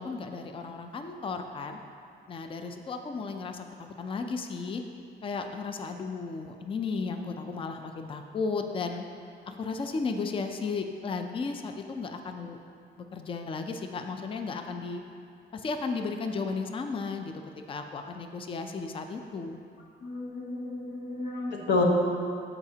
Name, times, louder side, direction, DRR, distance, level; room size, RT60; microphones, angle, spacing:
voice 1, 0.0-1.8 2.3-4.8 5.2-9.1 9.5-12.6 13.1-15.0 15.5-17.3 17.7-19.6, left 4 dB, 30° left, 6 dB, 0.4 m, -34 dB
voice 2, 20.0-21.8, left 3 dB, 70° left, -1 dB, 1.0 m, -30 dB
13.5 x 4.9 x 2.8 m, 2.5 s
cardioid pair, 145°, 19 cm